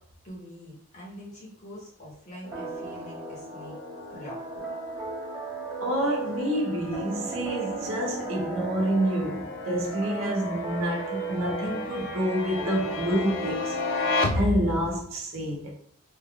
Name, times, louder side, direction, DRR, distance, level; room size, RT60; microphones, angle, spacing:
voice 1, 0.2-3.7 4.1-4.6, left 1 dB, 35° left, 1.2 m, -44 dB
sound 1, 2.4-15.0, left 2 dB, 55° left, 0.3 m, -34 dB
sound 2, 2.5-14.9, right 3 dB, 15° right, 1.3 m, -37 dB
voice 2, 5.8-15.7, right 1 dB, 60° right, 0.8 m, -28 dB
3.5 x 2.9 x 2.4 m
head